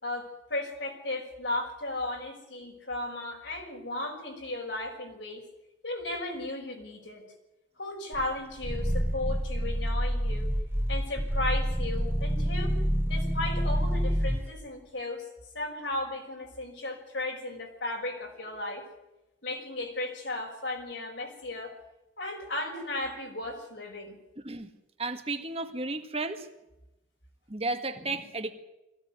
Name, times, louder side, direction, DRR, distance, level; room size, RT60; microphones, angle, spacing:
voice 1, 0.0-5.4 5.8-7.2 7.8-10.5 10.9-12.7 13.1-15.3 15.5-18.8 19.4-21.8 22.2-24.2, left 2 dB, 70° left, 1 dB, 5.9 m, -35 dB
Growling, 8.1-14.5, equal, 10° right, 1.1 m, -28 dB
voice 2, 25.0-26.5 27.5-28.5, right 2 dB, 30° right, 7 dB, 1.8 m, -33 dB
22.0 x 16.0 x 9.6 m, 0.96 s
head